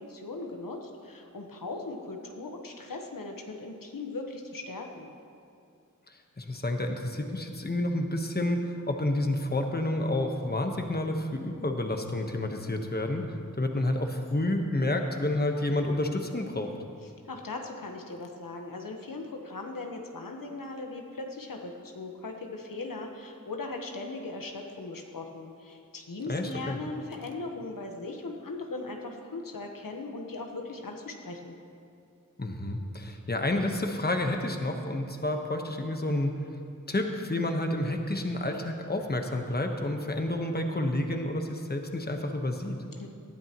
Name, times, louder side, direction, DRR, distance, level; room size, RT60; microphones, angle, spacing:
voice 1, 0.0-5.1 17.0-31.5 43.0-43.1, left 3 dB, 90° left, 2 dB, 1.2 m, -39 dB
voice 2, 6.1-16.7 26.3-26.8 32.4-36.3 36.9-42.8, left 1 dB, 30° left, 4 dB, 1.2 m, -30 dB
19.0 x 12.5 x 3.0 m, 2.4 s
wide cardioid pair, 55°, 32 cm